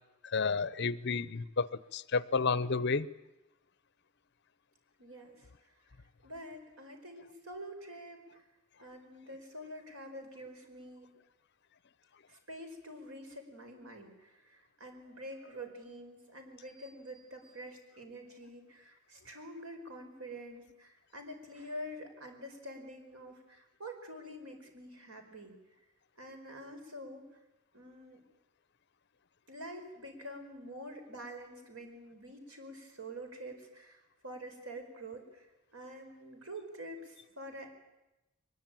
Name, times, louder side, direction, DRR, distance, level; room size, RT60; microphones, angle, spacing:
voice 1, 0.3-3.1, left 4 dB, 55° left, 17 dB, 0.8 m, -31 dB
voice 2, 5.0-5.5 6.2-8.4 8.8-11.1 12.3-25.6 26.2-27.2 27.7-28.2 29.5-35.5 35.7-37.7, equal, 85° right, 5 dB, 4.9 m, -47 dB
22.5 x 21.0 x 9.1 m, 0.99 s
head